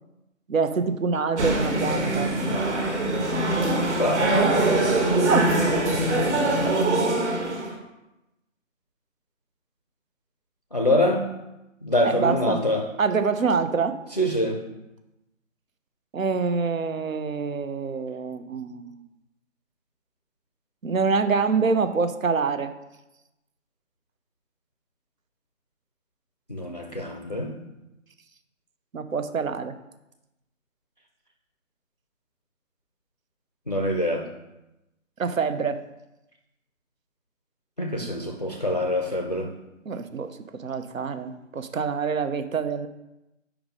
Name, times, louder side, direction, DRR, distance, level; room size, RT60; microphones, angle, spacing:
voice 1, 0.5-2.3 5.3-5.5 6.6-6.8 12.0-12.6 13.0-14.0 16.1-19.1 20.8-22.7 28.9-29.7 35.2-35.8 39.9-42.9, right 5 dB, 90° right, 10 dB, 0.7 m, -26 dB
sound 1, 1.4-7.8, right 2 dB, 60° right, 1.6 m, -23 dB
voice 2, 4.0-4.7 10.7-11.3 11.8-12.9 14.2-14.6 26.5-27.5 33.7-34.3 37.8-39.5, left 1 dB, 35° left, 1 dB, 0.4 m, -25 dB
4.9 x 4.6 x 5.2 m, 0.94 s
figure-of-eight pair, 155°, 39 cm